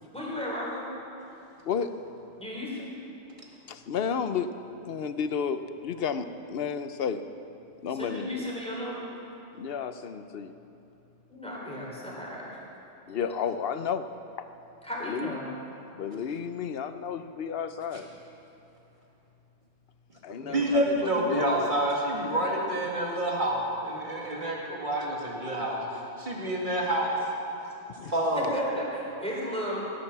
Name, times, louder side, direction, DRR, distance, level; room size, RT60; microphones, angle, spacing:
voice 1, 0.1-0.9 2.4-2.9 7.9-9.1 11.3-12.6 14.8-15.5 20.4-20.7 28.3-29.9, left 1 dB, 5° left, -5 dB, 4.0 m, -35 dB
voice 2, 3.7-4.5 4.8-7.2 7.8-8.3 9.5-10.5 13.1-14.1 14.4-14.5 15.0-15.3 15.9-18.1 20.2-21.7 22.1-22.2 28.0-28.1, left 7 dB, 60° left, 10 dB, 0.9 m, -32 dB
voice 3, 20.4-25.8 26.2-27.2 28.0-28.6, right 1 dB, 40° right, -3 dB, 2.6 m, -28 dB
16.0 x 11.5 x 7.3 m, 2.9 s
omnidirectional pair, 1.2 m